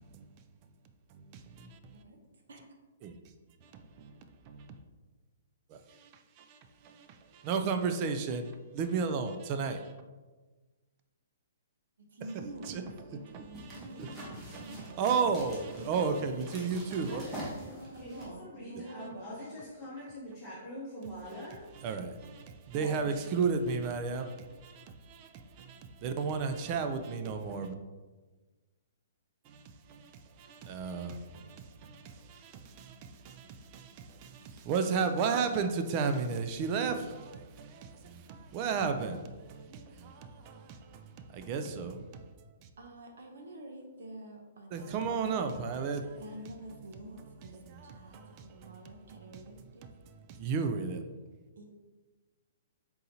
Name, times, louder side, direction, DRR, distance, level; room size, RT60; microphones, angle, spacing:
voice 1, 1.1-1.9 3.0-3.2 3.6-4.1 4.5-4.7 5.7-6.1 6.4-6.6 6.8-7.1 7.3-9.9 12.6-12.8 13.3-17.2 21.4-21.5 21.7-27.7 29.5-29.6 29.9-42.3 44.7-46.2 47.7-48.7 50.3-51.0, right 5 dB, 30° right, 0.3 m, -34 dB
voice 2, 12.0-15.1 15.8-16.2 16.9-17.1 17.6-19.5 42.8-45.6 46.2-49.9 51.6-51.7, right 1 dB, 80° right, 0.8 m, -48 dB
sound 1, 13.2-18.2, equal, 15° right, 1.0 m, -46 dB
voice 3, 17.1-17.5 18.0-21.6 22.7-23.2, equal, 15° left, 1.0 m, -44 dB
4.1 x 3.8 x 2.8 m
hypercardioid pair, 160°, 0 cm